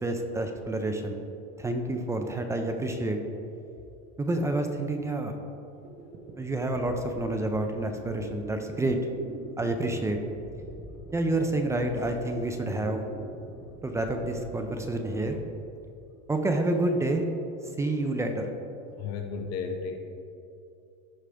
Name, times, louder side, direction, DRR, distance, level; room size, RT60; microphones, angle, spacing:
voice 1, 0.0-1.2 1.6-3.2 4.2-5.3 6.4-9.0 9.6-10.2 11.1-13.1 13.8-15.4 16.3-17.2 17.6-18.5, right 2 dB, 10° right, 5 dB, 0.3 m, -28 dB
sound 1, 5.8-16.3, right 1 dB, 25° right, 0.8 m, -45 dB
voice 2, 19.0-20.0, left 5 dB, 50° left, 5 dB, 0.8 m, -34 dB
14.0 x 4.9 x 3.3 m, 2.8 s
cardioid pair, 150°, 33 cm